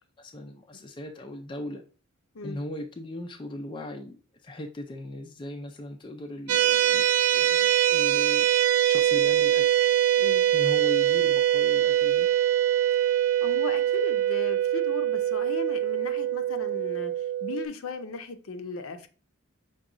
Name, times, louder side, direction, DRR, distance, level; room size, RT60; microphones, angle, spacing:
voice 1, 0.2-1.8 2.4-8.5 8.8-9.8 10.5-12.3, left 1 dB, 20° left, 0.3 m, -38 dB
sound 1, 6.5-17.7, right 11 dB, 85° right, 0.4 m, -23 dB
voice 2, 13.4-19.1, left 3 dB, 70° left, 0.5 m, -37 dB
6.0 x 2.3 x 3.7 m
head